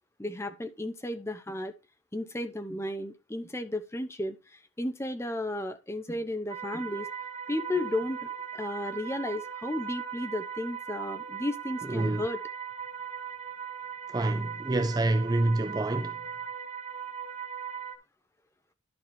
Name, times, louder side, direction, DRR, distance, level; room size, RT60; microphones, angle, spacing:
voice 1, 0.2-1.7 2.1-4.4 4.8-7.1 7.5-8.3 8.5-12.4, left 1 dB, 15° left, 0.8 m, -33 dB
sound 1, 6.5-18.0, right 8 dB, 35° right, 1.4 m, -39 dB
voice 2, 11.8-12.3 14.1-16.2, right 2 dB, 20° right, 0.4 m, -27 dB
11.5 x 4.9 x 4.4 m
head